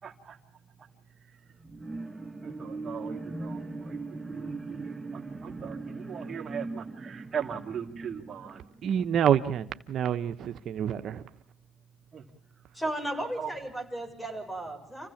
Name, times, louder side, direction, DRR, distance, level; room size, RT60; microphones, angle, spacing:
voice 1, 0.0-0.4 2.4-8.6 12.1-12.2 13.2-13.5, right 7 dB, 40° right, 2.8 m, -39 dB
sound 1, 1.6-9.4 9.8-9.9, right 3 dB, 15° right, 1.6 m, -39 dB
voice 2, 8.8-11.2, right 9 dB, 60° right, 1.1 m, -27 dB
voice 3, 12.7-15.1, right 1 dB, 15° left, 7.4 m, -35 dB
29.0 x 16.0 x 7.3 m
cardioid pair, 100°, 0 cm